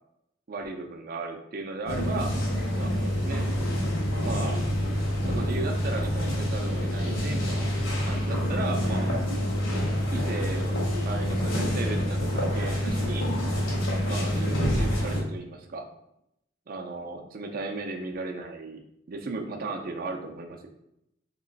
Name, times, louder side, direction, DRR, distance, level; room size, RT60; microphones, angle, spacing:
voice 1, 0.5-2.4 2.7-3.5 4.2-4.6 5.3-9.2 10.1-10.8 11.1-13.3 14.0-15.9 16.7-18.8 19.1-20.7, right 3 dB, 50° right, 4 dB, 0.5 m, -36 dB
sound 1, 1.9-15.2, equal, 80° left, 1.4 m, -27 dB
3.1 x 3.0 x 3.9 m, 0.81 s
head